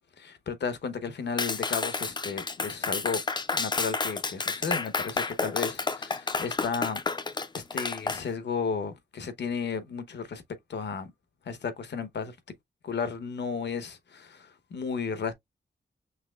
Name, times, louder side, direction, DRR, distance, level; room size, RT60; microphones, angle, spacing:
voice 1, 0.2-3.2 3.5-7.0 7.5-10.4 10.7-11.1 11.5-12.4 12.8-15.3, left 5 dB, 75° left, 0.9 m, -33 dB
Clapping, 1.4-8.2, left 4 dB, 25° left, 0.4 m, -30 dB
5.8 x 3.1 x 2.3 m
wide cardioid pair, 180°, 18 cm